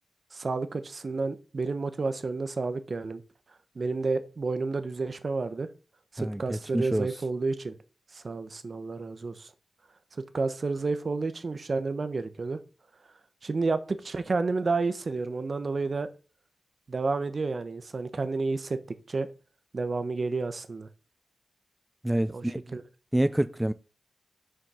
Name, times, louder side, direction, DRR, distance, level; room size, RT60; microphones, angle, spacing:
voice 1, 0.3-3.2 3.8-5.7 6.1-7.8 8.1-9.5 10.3-12.6 13.4-16.1 16.9-18.8 19.1-19.3 19.7-20.9 22.3-22.5 22.7-22.8, right 3 dB, 50° right, 0.9 m, -30 dB
voice 2, 6.2-7.2 22.0-22.8 23.1-23.7, right 1 dB, 10° right, 0.3 m, -28 dB
6.3 x 5.2 x 5.6 m
cardioid pair, 75°, 0 cm